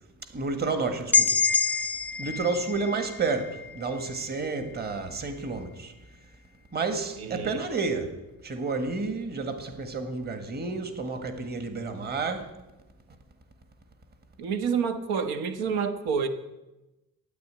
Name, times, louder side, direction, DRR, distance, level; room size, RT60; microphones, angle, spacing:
voice 1, 0.3-1.4 2.2-5.9 6.7-8.1 8.4-12.5, right 4 dB, 25° right, 1.6 m, -30 dB
sound 1, 1.1-4.9, left 5 dB, 5° left, 0.5 m, -27 dB
voice 2, 7.2-7.6 14.4-16.3, right 6 dB, 75° right, 1.5 m, -28 dB
13.5 x 9.6 x 8.8 m
cardioid pair, 150°, 37 cm